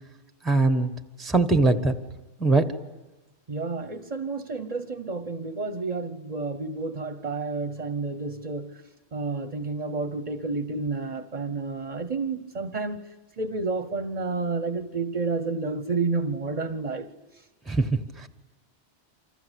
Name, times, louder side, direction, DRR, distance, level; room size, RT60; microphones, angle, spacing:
voice 1, 0.4-0.9 1.2-1.9 2.4-2.7 17.7-17.8, right 3 dB, ahead, 1.2 m, -21 dB
voice 2, 3.5-8.8 9.1-13.0 13.4-17.1, right 3 dB, 35° right, 1.1 m, -30 dB
28.0 x 26.0 x 8.2 m
omnidirectional pair, 1.2 m